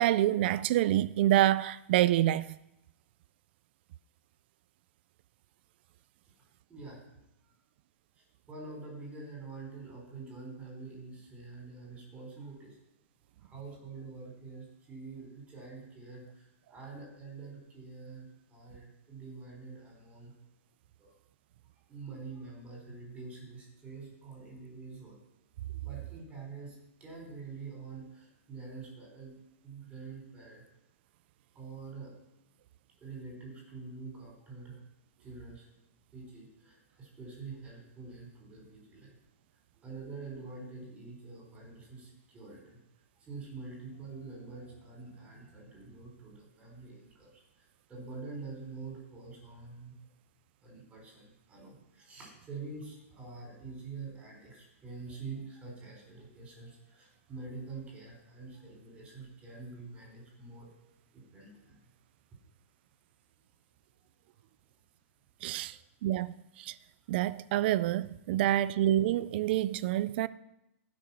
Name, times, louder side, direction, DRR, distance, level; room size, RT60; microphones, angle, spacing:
voice 1, 0.0-2.6 65.4-65.7 66.0-66.7 67.1-70.3, right 13 dB, 50° right, 0.4 m, -27 dB
voice 2, 6.7-7.1 7.4-7.5 8.2-12.8 13.4-20.3 21.0-21.1 21.9-25.2 25.8-29.4 29.6-30.6 31.5-32.1 33.0-34.8 35.2-35.7 36.1-39.2 39.8-42.8 43.2-50.0 50.6-60.7 61.1-61.9 65.6-65.7, right 4 dB, 15° right, 4.6 m, -46 dB
16.0 x 6.2 x 5.8 m
hypercardioid pair, 155°, 7 cm